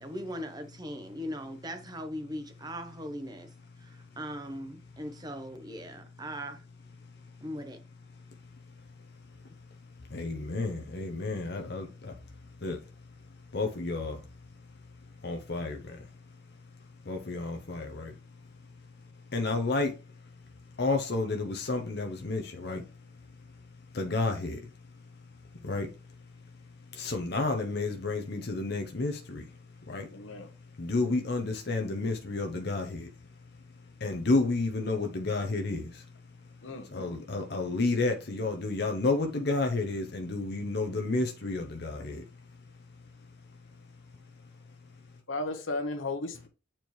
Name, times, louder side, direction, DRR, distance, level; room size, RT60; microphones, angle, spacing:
voice 1, 0.0-3.5 3.8-6.6 7.4-7.8, equal, 20° right, 0.9 m, -39 dB
voice 2, 10.1-11.9 12.6-12.8 13.5-14.2 15.2-15.8 17.1-18.1 19.3-19.9 20.8-22.8 23.9-24.6 25.6-25.9 27.0-29.4 29.9-30.1 30.8-33.1 34.0-35.9 36.9-42.2, left 3 dB, 50° left, 0.7 m, -30 dB
voice 3, 30.1-30.5 36.6-36.9 45.3-46.5, left 2 dB, 75° left, 1.1 m, -34 dB
8.7 x 4.4 x 3.1 m
head